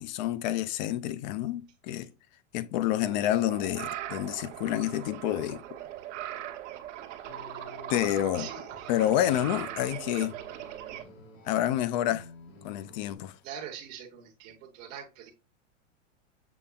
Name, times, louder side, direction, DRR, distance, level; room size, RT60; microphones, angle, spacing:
voice 1, 0.0-2.1 2.5-5.8 7.9-8.5 8.9-10.3 11.5-12.3 12.6-13.3, left 12 dB, 40° left, 0.4 m, -28 dB
sound 1, 3.0-11.0, right 12 dB, 65° right, 1.1 m, -40 dB
sound 2, 7.3-13.1, left 3 dB, 85° left, 1.7 m, -50 dB
voice 2, 8.4-8.9 9.3-9.4 13.4-15.3, right 8 dB, 40° right, 0.9 m, -43 dB
7.1 x 3.2 x 2.3 m
supercardioid pair, 145°, 38 cm